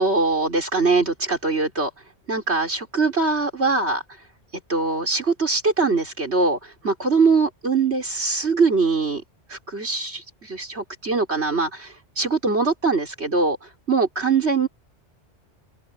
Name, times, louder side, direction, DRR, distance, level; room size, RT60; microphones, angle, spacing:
voice 1, 0.0-1.9 2.3-4.0 4.7-9.2 9.5-13.6 13.9-14.7, right 4 dB, 65° right, 5.0 m, -22 dB
open air
omnidirectional pair, 1.2 m